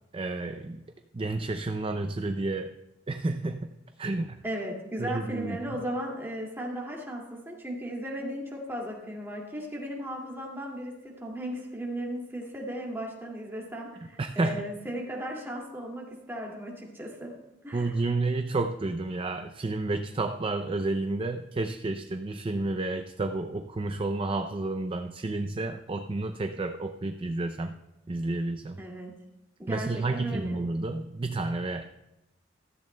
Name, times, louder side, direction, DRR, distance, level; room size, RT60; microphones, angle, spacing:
voice 1, 0.1-0.8 1.1-2.7 3.1-3.7 4.0-4.4 5.0-5.6 14.2-14.6 17.7-27.7 28.1-28.8 29.7-31.8, right 2 dB, 30° right, 7 dB, 0.4 m, -30 dB
voice 2, 4.4-17.3 17.6-17.9 28.8-29.1 29.6-30.6, right 1 dB, 15° right, -2 dB, 2.2 m, -36 dB
15.0 x 14.0 x 2.2 m, 0.94 s
head